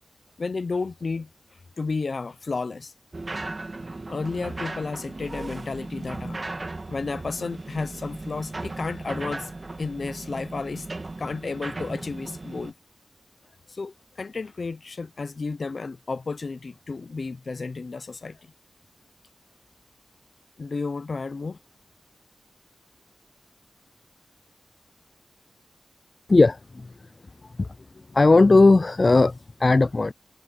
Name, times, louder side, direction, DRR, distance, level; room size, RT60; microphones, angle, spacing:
voice 1, 0.4-1.3 1.8-2.9 4.1-6.4 6.9-9.5 9.8-12.7 13.7-18.4 20.6-21.6, left 4 dB, 65° left, 0.8 m, -32 dB
sound 1, 3.1-12.7, right 2 dB, 45° right, 2.4 m, -36 dB
voice 2, 26.3-26.9 27.6-27.7 28.1-30.1, left 3 dB, 45° left, 0.3 m, -17 dB
cardioid pair, 45°, 0 cm